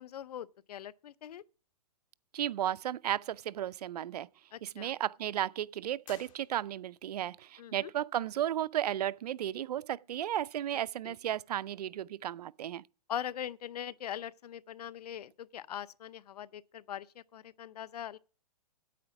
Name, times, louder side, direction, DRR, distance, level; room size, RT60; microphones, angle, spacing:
voice 1, 0.0-1.4 4.5-4.9 7.6-7.9 11.0-11.2 13.1-18.2, left 10 dB, 75° left, 0.6 m, -41 dB
voice 2, 2.3-4.3 4.6-12.8, right 11 dB, 75° right, 0.5 m, -34 dB
sound 1, 6.0-7.1, left 10 dB, 55° left, 1.8 m, -56 dB
9.4 x 8.6 x 5.9 m
hypercardioid pair, 160°, 20 cm